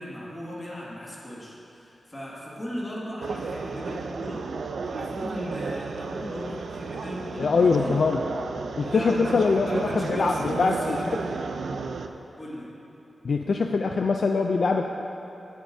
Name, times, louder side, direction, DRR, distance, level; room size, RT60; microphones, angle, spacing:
voice 1, 0.0-4.4 4.8-8.0 8.8-11.3 12.4-12.7, equal, 20° left, -6 dB, 1.9 m, -37 dB
sound 1, 3.2-12.1, right 4 dB, 75° right, 0.4 m, -33 dB
voice 2, 7.4-8.2 8.8-11.0 13.2-14.8, left 4 dB, 55° left, 3 dB, 0.4 m, -23 dB
17.0 x 8.1 x 2.7 m, 2.8 s
wide cardioid pair, 170°, 0 cm